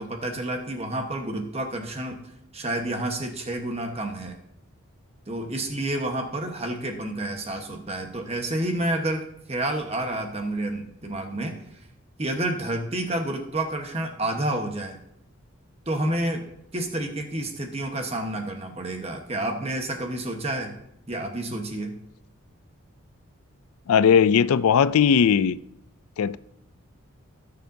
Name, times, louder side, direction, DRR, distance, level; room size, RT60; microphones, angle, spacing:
voice 1, 0.0-2.2 2.5-4.4 5.3-11.6 12.2-15.0 15.9-16.5 16.7-20.8 21.1-22.0, right 1 dB, 30° right, 1.2 m, -29 dB
voice 2, 23.9-25.6 26.2-26.4, left 7 dB, 80° left, 0.4 m, -18 dB
17.0 x 6.9 x 2.7 m
head